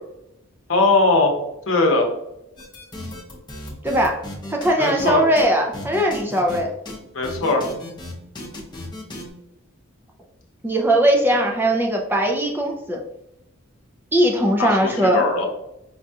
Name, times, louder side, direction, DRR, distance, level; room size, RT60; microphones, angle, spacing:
voice 1, 0.7-1.4 1.7-2.1 4.8-5.2 7.1-7.6 14.6-15.4, left 2 dB, 65° left, 2 dB, 0.8 m, -19 dB
sound 1, 2.6-5.1 5.4-5.5 5.7-6.6 6.9-7.0 7.2-9.2, left 1 dB, 20° left, 0.7 m, -35 dB
voice 2, 3.8-4.2 4.5-6.7 10.6-13.0 14.1-15.2, right 1 dB, 10° right, 1 dB, 0.4 m, -19 dB
5.1 x 2.3 x 2.7 m, 0.86 s
head